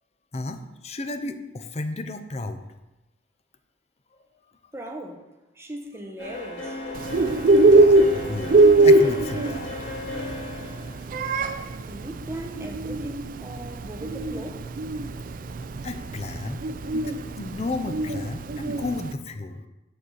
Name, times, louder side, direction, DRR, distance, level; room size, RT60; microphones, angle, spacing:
voice 1, 0.3-2.6 7.8-8.5 8.8-9.7 15.8-16.6 16.9-19.7, left 2 dB, 35° left, 0.6 m, -33 dB
voice 2, 4.7-5.3 5.5-6.8 11.7-14.7, right 1 dB, 15° right, 0.9 m, -38 dB
sound 1, 6.2-12.0, left 2 dB, 70° left, 2.6 m, -36 dB
Bird, 7.0-19.1, right 2 dB, 45° right, 0.4 m, -21 dB
7.5 x 4.2 x 6.3 m
head